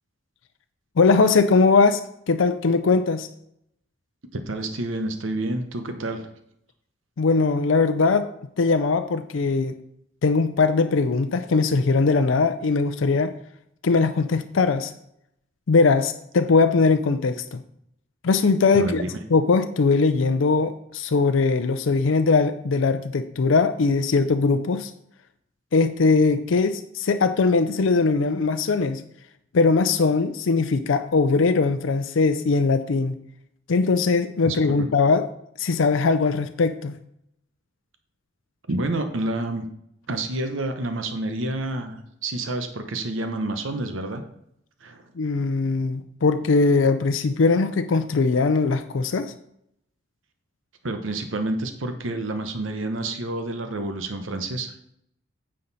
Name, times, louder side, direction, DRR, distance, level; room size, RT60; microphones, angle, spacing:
voice 1, 1.0-2.0 2.3-3.3 7.2-8.3 8.6-9.8 10.2-13.3 13.8-14.9 15.7-17.6 18.2-19.0 19.3-24.9 25.7-29.0 29.5-33.1 33.7-35.3 35.6-36.9 45.2-49.3, left 4 dB, 80° left, 9 dB, 0.5 m, -20 dB
voice 2, 4.3-6.3 18.7-19.2 34.4-34.8 38.7-39.7 40.1-44.2 44.8-45.0 50.8-54.7, right 2 dB, 85° right, 7 dB, 0.9 m, -29 dB
9.6 x 6.5 x 4.1 m, 0.75 s
head